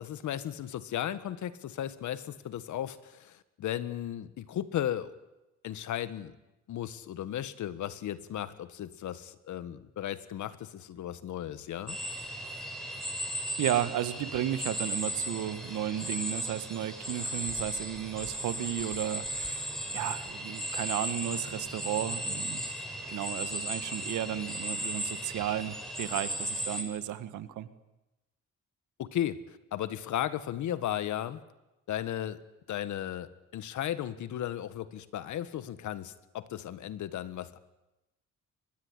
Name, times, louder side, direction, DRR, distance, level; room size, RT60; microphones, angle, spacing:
voice 1, 0.0-5.1 5.6-6.4 6.7-12.0 29.0-31.4 31.9-32.4 32.7-37.6, left 11 dB, 75° left, 14 dB, 1.6 m, -35 dB
sound 1, 11.9-26.8, equal, ahead, 7.7 m, -36 dB
voice 2, 13.6-22.7 23.1-27.7, right 11 dB, 80° right, 13 dB, 1.7 m, -34 dB
23.5 x 21.0 x 9.8 m, 0.98 s
cardioid pair, 90°, 30 cm